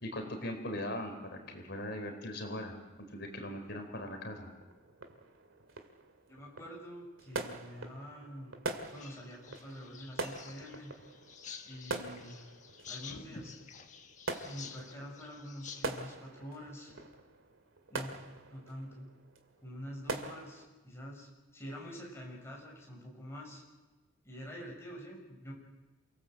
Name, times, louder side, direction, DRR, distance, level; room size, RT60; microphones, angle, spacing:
voice 1, 0.0-2.8 3.1-4.5, left 1 dB, 55° left, 4 dB, 4.4 m, -40 dB
sound 1, 3.9-20.7, right 2 dB, 80° right, 2.3 m, -44 dB
voice 2, 6.3-8.6 8.9-10.9 11.6-12.4 12.9-13.5 14.5-16.9 17.9-18.2 18.5-19.1 19.6-23.6 24.2-25.5, equal, 15° left, -2 dB, 6.7 m, -46 dB
sound 2, 8.8-16.0, left 6 dB, 35° left, 1.5 m, -50 dB
28.5 x 18.0 x 7.9 m, 1.2 s
head